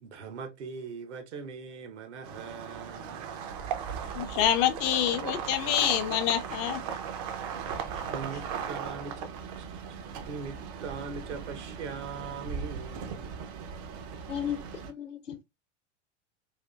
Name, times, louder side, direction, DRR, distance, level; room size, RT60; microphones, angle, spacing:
voice 1, 0.0-3.2 8.1-9.8 10.2-13.3, right 5 dB, 65° right, 0.8 m, -41 dB
sound 1, 2.2-14.9, right 7 dB, 35° right, 0.4 m, -38 dB
voice 2, 4.1-6.8, left 11 dB, 30° left, 0.4 m, -26 dB
voice 3, 14.3-15.4, left 9 dB, 80° left, 0.9 m, -35 dB
3.4 x 2.4 x 2.2 m
figure-of-eight pair, 90°, 37 cm